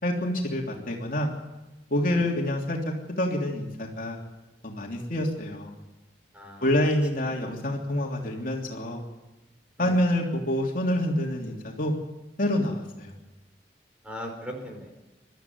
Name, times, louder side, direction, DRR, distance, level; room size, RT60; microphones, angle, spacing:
voice 1, 0.0-1.3 1.9-4.2 4.6-5.7 6.6-9.0 9.8-11.9 12.4-13.1, left 1 dB, 50° left, 0 dB, 3.1 m, -27 dB
voice 2, 6.3-6.7 7.2-7.3 9.8-9.9 14.0-14.9, equal, 5° right, 1 dB, 5.0 m, -39 dB
23.5 x 13.0 x 9.5 m, 1.1 s
head